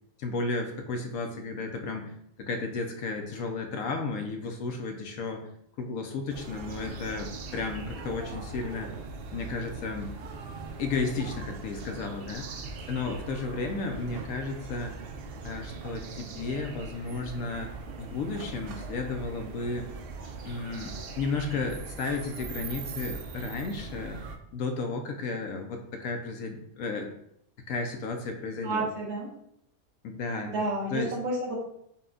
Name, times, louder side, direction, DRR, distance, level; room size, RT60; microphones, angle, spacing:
voice 1, 0.2-2.1 2.4-5.5 5.8-8.9 9.3-10.1 10.8-12.5 12.9-14.9 15.4-17.7 18.0-19.9 20.5-24.2 24.5-27.1 27.7-28.8 30.0-30.5 30.9-31.1, left 3 dB, 70° left, 4 dB, 1.1 m, -33 dB
sound 1, 6.3-24.4, right 4 dB, 70° right, 0.5 m, -40 dB
voice 2, 28.6-29.3 30.4-31.6, right 2 dB, 50° right, -2 dB, 1.2 m, -30 dB
5.6 x 2.3 x 3.8 m, 0.72 s
omnidirectional pair, 1.6 m